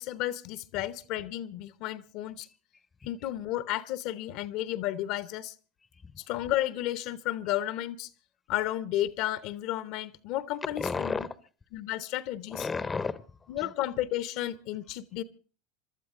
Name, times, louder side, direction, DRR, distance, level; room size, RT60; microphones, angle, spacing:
voice 1, 0.0-2.5 3.0-5.5 6.2-8.1 8.5-11.3 11.7-12.7 13.5-15.2, left 14 dB, 60° left, 15 dB, 0.9 m, -32 dB
voice 2, 2.7-3.1 5.9-6.2 10.8-11.4 12.5-13.7, left 4 dB, 20° left, 16 dB, 0.8 m, -34 dB
26.5 x 12.0 x 3.7 m, 0.39 s
hypercardioid pair, 85°, 0 cm